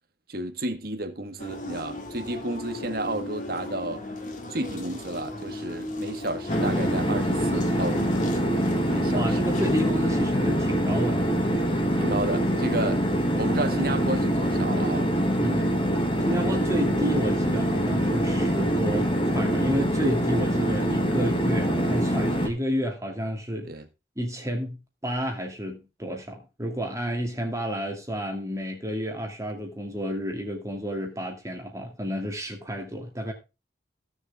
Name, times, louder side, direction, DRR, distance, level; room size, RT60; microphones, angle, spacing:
voice 1, 0.3-4.0 4.5-8.1 8.9-9.5 11.9-13.0 13.4-15.1 15.4-15.7 23.7-23.9, right 1 dB, 55° right, 1.8 m, -32 dB
sound 1, 1.4-9.9, left 2 dB, 45° left, 2.4 m, -36 dB
sound 2, 6.5-22.5, equal, 30° left, 2.3 m, -24 dB
voice 2, 9.1-11.3 15.4-15.7 16.2-23.8 24.2-24.8 25.0-33.3, equal, 15° right, 2.4 m, -30 dB
16.0 x 7.1 x 3.7 m
head